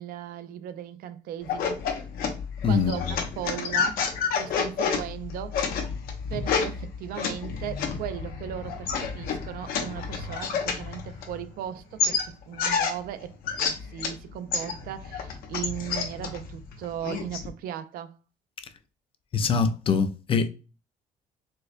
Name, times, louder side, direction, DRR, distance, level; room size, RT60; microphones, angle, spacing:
voice 1, 0.0-1.8 2.6-4.0 4.3-5.6 6.3-18.1, right 10 dB, 85° right, 0.4 m, -37 dB
sound 1, 1.4-11.6 12.0-14.2 14.5-17.5, left 6 dB, 80° left, 0.8 m, -30 dB
voice 2, 2.6-3.0 19.3-20.5, left 5 dB, 40° left, 0.4 m, -23 dB
4.4 x 2.1 x 2.5 m
cardioid pair, 140°, 15 cm